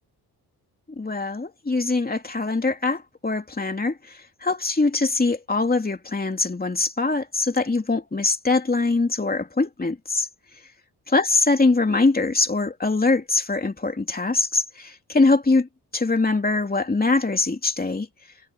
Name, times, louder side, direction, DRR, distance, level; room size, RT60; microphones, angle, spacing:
voice 1, 1.0-10.3 11.1-18.1, left 3 dB, 20° left, 3.0 m, -23 dB
cardioid pair, 95°, 41 cm